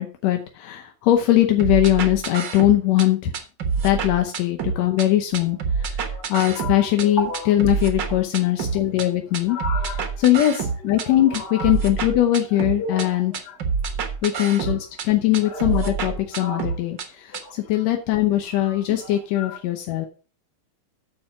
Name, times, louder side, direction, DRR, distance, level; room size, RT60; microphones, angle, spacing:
voice 1, 0.0-3.3 3.8-6.0 6.3-9.6 10.2-13.3 14.2-20.1, left 13 dB, 70° left, 5 dB, 1.7 m, -21 dB
sound 1, 1.6-3.1 3.3-5.1 5.3-7.1 7.3-9.1 9.3-11.1 11.3-13.1 13.3-15.1 15.3-17.1 17.3-17.4, right 5 dB, 85° right, 1.0 m, -27 dB
voice 2, 5.7-6.3 6.6-7.6 8.1-8.2 9.5-10.2 11.0-11.7 12.5-13.1 13.4-13.6 14.6-14.7 15.4-15.9 16.3-16.7 17.3-17.5 18.6-19.6, left 2 dB, 40° left, 2 dB, 3.9 m, -34 dB
8.8 x 6.9 x 4.9 m, 0.36 s
omnidirectional pair, 3.9 m